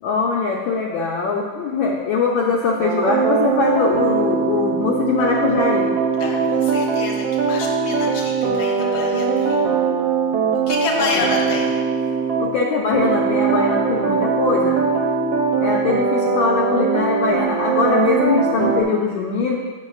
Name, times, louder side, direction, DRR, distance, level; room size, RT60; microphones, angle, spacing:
voice 1, 0.0-5.9 11.0-11.2 12.4-14.8 15.6-19.6, left 4 dB, 70° left, -2 dB, 1.3 m, -21 dB
sound 1, 2.8-12.5 12.9-18.8, right 5 dB, 70° right, 1.4 m, -21 dB
voice 2, 6.2-9.6 10.7-11.8, left 3 dB, 55° left, -1 dB, 1.4 m, -28 dB
8.9 x 6.4 x 2.4 m, 1.4 s
omnidirectional pair, 2.4 m